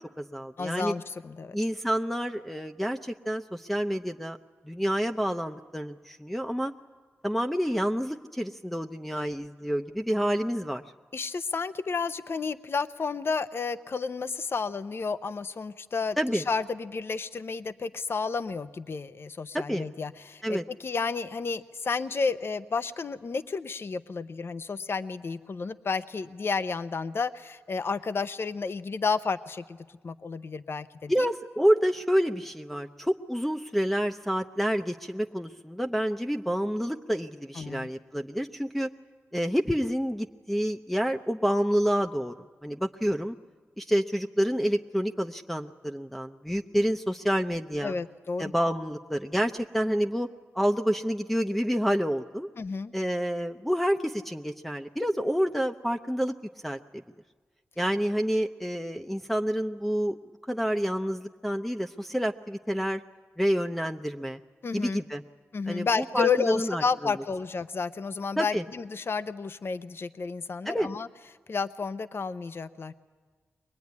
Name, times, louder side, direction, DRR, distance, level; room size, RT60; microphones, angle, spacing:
voice 1, 0.0-0.9 1.5-4.4 4.7-6.7 7.2-10.8 16.2-16.4 19.5-19.9 20.4-20.6 31.1-38.9 39.3-42.3 42.6-43.4 43.8-47.9 48.4-50.3 50.5-52.5 52.9-56.3 56.6-57.0 57.8-60.2 60.5-63.0 63.4-64.4 64.7-65.2 65.7-67.1 68.4-68.6 70.6-70.9, equal, 5° left, 3 dB, 0.7 m, -28 dB
voice 2, 0.6-1.6 11.1-29.8 30.0-31.3 37.6-37.9 47.8-48.5 52.6-52.9 64.6-65.0 65.5-71.1 71.5-72.9, left 4 dB, 55° left, 13 dB, 0.7 m, -31 dB
23.0 x 20.0 x 9.6 m, 1.5 s
cardioid pair, 70°, 5 cm